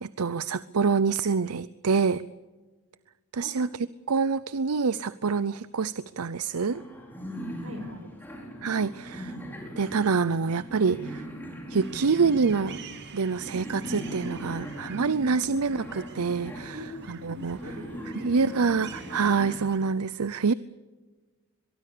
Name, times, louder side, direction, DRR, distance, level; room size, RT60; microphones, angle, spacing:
voice 1, 0.0-2.2 3.3-3.7 4.1-6.8 8.6-9.3 9.8-11.2 11.7-12.8 13.1-16.8 17.1-17.6 18.1-20.5, right 5 dB, 90° right, 17 dB, 0.6 m, -26 dB
sound 1, 6.7-19.6, equal, 10° left, 5.6 m, -40 dB
voice 2, 7.6-8.2 8.5-8.7 9.1-9.2 15.4-15.5 16.7-18.6, left 1 dB, 70° right, 7 dB, 5.4 m, -44 dB
sound 2, 11.8-19.8, right 4 dB, 50° right, 2.4 m, -47 dB
23.0 x 23.0 x 6.8 m, 1.3 s
head